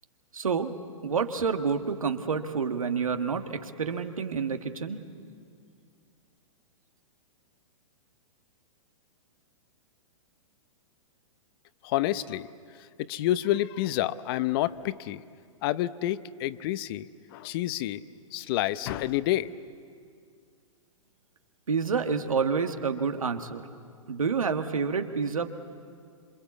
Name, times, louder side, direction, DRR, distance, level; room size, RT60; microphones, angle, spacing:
voice 1, 0.3-0.8 1.0-5.0 21.7-23.6 24.1-25.5, right 5 dB, 80° right, 7 dB, 1.6 m, -28 dB
voice 2, 11.8-12.5 13.0-15.2 15.6-18.0 18.3-19.5, left 14 dB, 45° left, 15 dB, 0.8 m, -29 dB
26.5 x 24.5 x 8.4 m, 2.3 s
hypercardioid pair, 115°, 17 cm